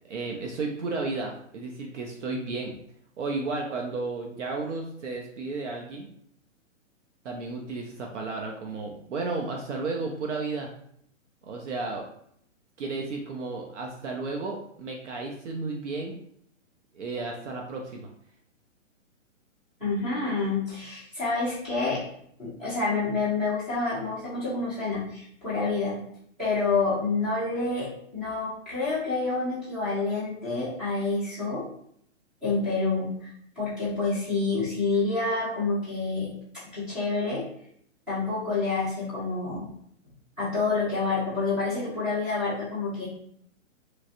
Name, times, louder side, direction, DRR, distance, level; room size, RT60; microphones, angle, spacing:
voice 1, 0.0-2.8 3.2-6.1 7.2-10.7 11.4-12.0 12.8-16.2 16.9-18.1, right 3 dB, 65° right, 1 dB, 0.7 m, -33 dB
voice 2, 19.8-22.0 22.4-26.0 26.4-31.6 32.4-33.3 33.6-36.3 36.7-37.4 38.1-39.7 40.4-43.1, left 3 dB, ahead, -12 dB, 0.5 m, -28 dB
3.2 x 2.6 x 2.5 m, 0.69 s
hypercardioid pair, 155°, 38 cm